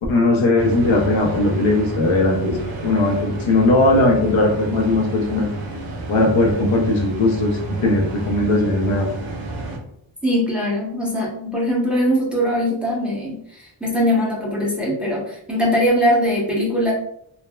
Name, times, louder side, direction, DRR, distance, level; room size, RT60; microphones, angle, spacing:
voice 1, 0.1-2.6 2.8-5.5 6.1-9.1, left 2 dB, 70° left, 1 dB, 0.6 m, -18 dB
sound 1, 0.6-9.8, right 3 dB, 50° right, 0.7 m, -30 dB
voice 2, 10.2-16.9, equal, ahead, -4 dB, 0.8 m, -21 dB
3.2 x 2.0 x 2.2 m, 0.72 s
wide cardioid pair, 75°, 48 cm